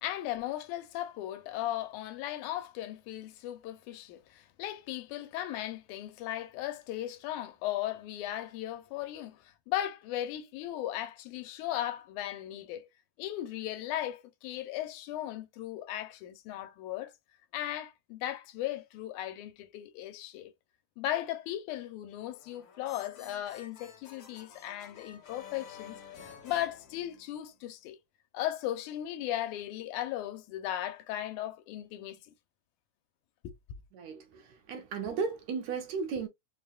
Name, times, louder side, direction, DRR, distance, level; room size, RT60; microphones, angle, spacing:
voice 1, 0.0-9.4 9.7-12.9 13.2-17.1 17.5-20.5 21.0-26.0 26.4-28.0 28.3-32.2 33.4-33.5, left 13 dB, 80° left, 2.0 m, -37 dB
sound 1, 22.3-27.6, left 7 dB, 55° left, 1.8 m, -51 dB
voice 2, 33.9-36.3, right 5 dB, 75° right, 1.8 m, -35 dB
5.2 x 2.2 x 2.3 m
omnidirectional pair, 3.5 m